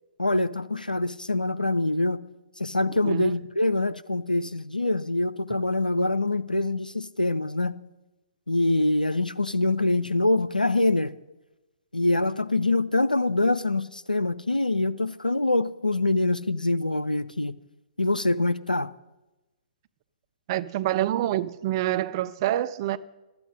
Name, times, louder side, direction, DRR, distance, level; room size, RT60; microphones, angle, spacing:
voice 1, 0.2-2.2 2.6-7.7 8.5-11.1 11.9-17.5 18.0-18.9, left 2 dB, 85° left, 0.5 m, -24 dB
voice 2, 20.5-23.0, right 13 dB, 30° right, 0.5 m, -26 dB
12.5 x 8.4 x 6.5 m
figure-of-eight pair, 125°, 4 cm